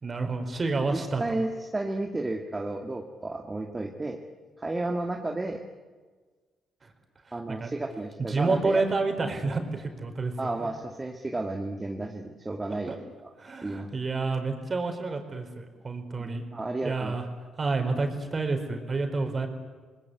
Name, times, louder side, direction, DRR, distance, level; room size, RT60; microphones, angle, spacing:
voice 1, 0.0-1.2 6.8-6.9 7.5-7.7 8.2-10.7 12.7-13.0 13.4-16.4 16.8-17.2 17.6-19.5, right 3 dB, 40° right, 5 dB, 4.8 m, -29 dB
voice 2, 0.9-4.2 4.6-5.6 7.3-8.9 10.4-13.0 13.6-13.9 16.2-17.1, right 2 dB, 25° right, 2 dB, 2.2 m, -32 dB
27.0 x 19.5 x 8.5 m, 1.4 s
supercardioid pair, 60°, 0 cm